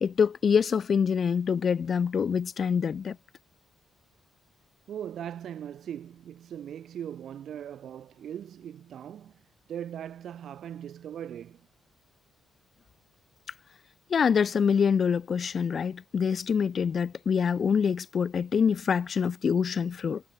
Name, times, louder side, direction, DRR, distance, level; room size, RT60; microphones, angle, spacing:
voice 1, 0.0-3.2 14.1-20.2, left 6 dB, 40° left, 0.5 m, -25 dB
voice 2, 4.9-9.4 9.7-11.7, right 9 dB, 60° right, 3.6 m, -39 dB
cardioid pair, 145°, 0 cm